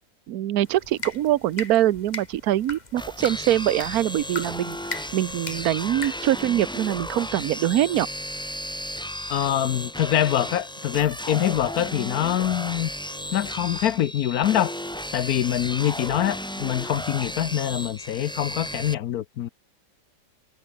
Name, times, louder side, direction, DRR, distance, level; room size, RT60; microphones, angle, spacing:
voice 1, 0.3-8.1, right 13 dB, 60° right, 1.1 m, -24 dB
sound 1, 0.6-6.4, left 3 dB, 20° left, 2.0 m, -39 dB
sound 2, 3.0-18.9, equal, 5° left, 1.1 m, -34 dB
voice 2, 9.3-12.9 13.3-14.8 15.1-19.5, left 11 dB, 65° left, 1.0 m, -24 dB
omnidirectional pair, 2.1 m